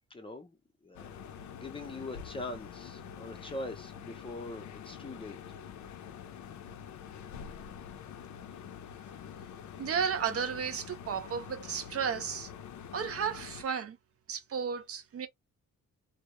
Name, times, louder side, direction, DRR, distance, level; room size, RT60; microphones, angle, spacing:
voice 1, 0.1-0.6 0.8-1.2 1.6-5.4, left 2 dB, 20° left, 0.5 m, -42 dB
sound 1, 0.9-13.6, left 8 dB, 75° left, 0.5 m, -46 dB
voice 2, 9.8-12.5 12.9-14.0 14.3-15.3, right 7 dB, 50° right, 0.5 m, -33 dB
2.2 x 2.0 x 2.8 m
wide cardioid pair, 140°, 29 cm